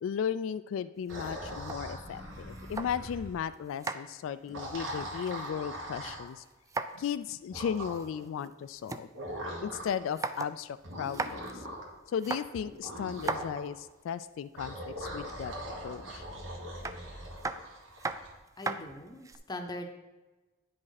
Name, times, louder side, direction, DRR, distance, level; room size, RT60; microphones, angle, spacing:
voice 1, 0.0-6.4 6.9-9.1 9.6-11.7 12.1-15.5 15.8-16.2, left 8 dB, 90° left, 14 dB, 0.3 m, -35 dB
sound 1, 1.0-3.2 3.5-5.8 6.0-7.1 7.4-7.5 7.8-9.1 9.5-9.6 9.9-10.6 10.9-11.5 12.1-14.1 15.0-15.6 16.8-19.4, right 3 dB, 15° right, 0.3 m, -38 dB
sound 2, 1.1-3.4 4.4-6.3 7.5-8.2 9.1-10.0 10.8-12.0 12.6-13.6 14.6-18.3, equal, 80° right, 1.7 m, -41 dB
voice 2, 18.6-19.9, left 1 dB, 20° left, 5 dB, 0.7 m, -40 dB
9.5 x 5.1 x 4.1 m, 1.2 s
head